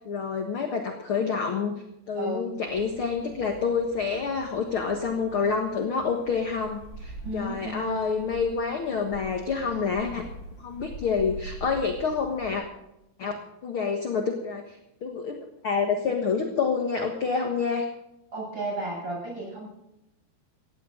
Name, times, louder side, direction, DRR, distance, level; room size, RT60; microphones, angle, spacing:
voice 1, 0.0-1.8 2.1-10.2 10.6-12.6 13.2-13.3 13.6-14.8 15.0-17.8, left 5 dB, 55° left, 3 dB, 1.5 m, -28 dB
voice 2, 2.1-2.6 7.2-8.0 9.7-9.8 18.3-19.7, right 1 dB, 25° right, -3 dB, 8.2 m, -33 dB
sound 1, 2.7-12.5, right 1 dB, 20° left, 4.9 m, -44 dB
18.0 x 16.5 x 3.9 m, 0.85 s
omnidirectional pair, 4.7 m